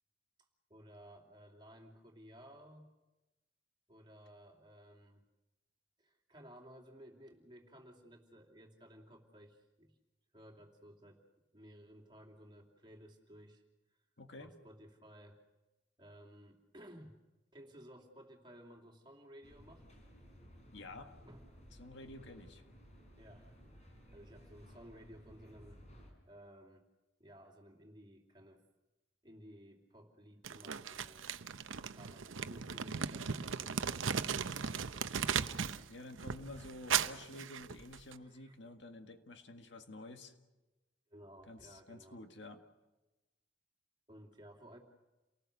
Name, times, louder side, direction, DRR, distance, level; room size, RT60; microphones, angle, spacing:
voice 1, 0.7-2.9 3.9-5.2 6.0-10.0 10.3-11.2 11.5-13.6 14.4-15.4 16.0-17.2 17.5-19.9 20.5-20.6 21.2-21.5 23.2-25.8 26.2-26.9 27.2-28.6 29.2-31.3 31.9-35.9 38.2-38.6 41.1-42.2 44.1-44.8, equal, 25° right, 2 dB, 2.9 m, -57 dB
voice 2, 14.2-14.5 20.7-21.1 21.8-22.6 35.9-40.3 41.5-42.6, left 2 dB, 65° left, 6 dB, 1.8 m, -50 dB
sound 1, 19.4-26.1, equal, 35° left, 4.7 m, -58 dB
Crumpling crinkling, 30.4-35.8 36.1-38.1, right 7 dB, 90° right, 0.8 m, -37 dB
29.0 x 19.0 x 6.7 m, 1.1 s
head